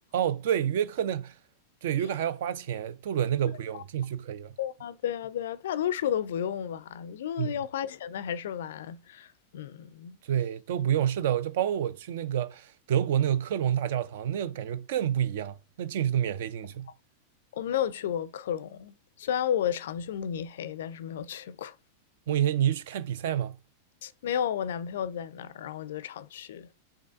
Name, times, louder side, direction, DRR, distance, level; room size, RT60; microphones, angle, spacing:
voice 1, 0.1-1.4 1.8-4.6 7.4-7.5 10.2-16.9 22.3-23.6, right 10 dB, 55° right, 0.3 m, -28 dB
voice 2, 4.6-10.2 17.5-21.8 24.0-26.7, left 9 dB, 60° left, 0.3 m, -32 dB
5.3 x 3.6 x 2.5 m
figure-of-eight pair, 90°, 0 cm